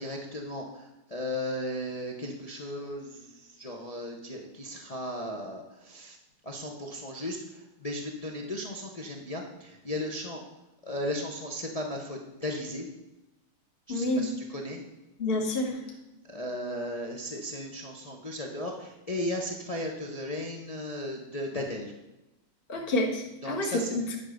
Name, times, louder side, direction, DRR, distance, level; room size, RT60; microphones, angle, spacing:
voice 1, 0.0-6.2 6.4-10.4 10.8-12.9 13.9-14.8 16.2-21.9 23.4-23.9, left 1 dB, 65° left, 1 dB, 0.3 m, -36 dB
voice 2, 13.9-14.3 15.2-15.8 22.7-24.2, left 1 dB, 40° left, 0 dB, 0.9 m, -28 dB
10.0 x 4.9 x 6.4 m, 0.97 s
omnidirectional pair, 2.2 m